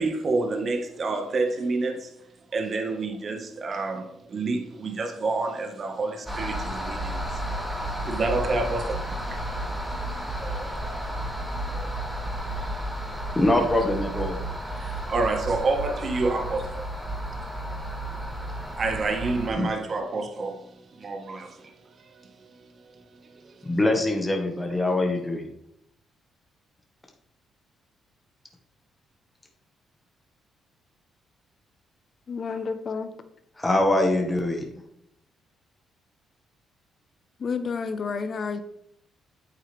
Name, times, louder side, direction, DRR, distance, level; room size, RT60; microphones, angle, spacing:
voice 1, 0.0-2.1 2.5-11.1 11.5-13.3 14.7-16.8 18.1-18.3 18.8-20.6 20.9-21.7, right 3 dB, 45° right, 1.6 m, -29 dB
sound 1, 6.3-19.5, right 1 dB, 5° right, 2.4 m, -32 dB
voice 2, 13.3-14.4 19.6-19.7 23.6-25.5 33.6-34.7, left 1 dB, 15° left, 1.6 m, -23 dB
voice 3, 32.3-33.1 37.4-38.6, left 5 dB, 45° left, 1.0 m, -30 dB
9.0 x 8.0 x 3.5 m
cardioid pair, 90°, 0 cm